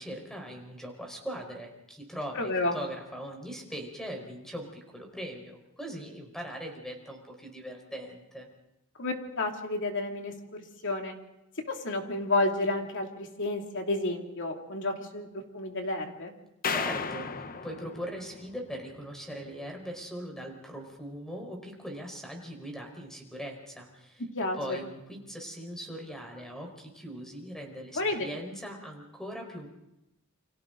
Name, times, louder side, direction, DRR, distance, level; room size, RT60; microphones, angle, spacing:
voice 1, 0.0-8.5 16.7-24.2 24.6-29.7, equal, ahead, 2 dB, 4.7 m, -40 dB
voice 2, 2.3-2.8 9.0-11.1 11.7-16.4 24.3-24.8 27.9-28.2, left 2 dB, 55° left, 2 dB, 2.8 m, -31 dB
sound 1, 16.6-19.0, left 5 dB, 40° left, 0.9 m, -35 dB
29.0 x 25.0 x 3.9 m, 0.88 s
head